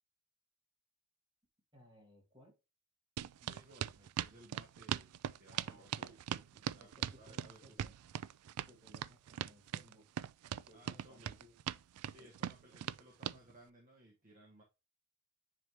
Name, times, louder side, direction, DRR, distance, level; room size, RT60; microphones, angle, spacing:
voice 1, 1.7-2.6 5.5-7.9 8.7-10.1 10.7-11.6 12.2-12.3, equal, 20° right, 0 dB, 2.3 m, -62 dB
sound 1, 3.2-13.4, right 10 dB, 80° right, 0.3 m, -40 dB
voice 2, 3.4-6.1 6.7-7.9 10.7-11.4 12.0-14.6, right 1 dB, 35° right, -2 dB, 1.3 m, -61 dB
9.9 x 3.5 x 2.9 m, 0.28 s
head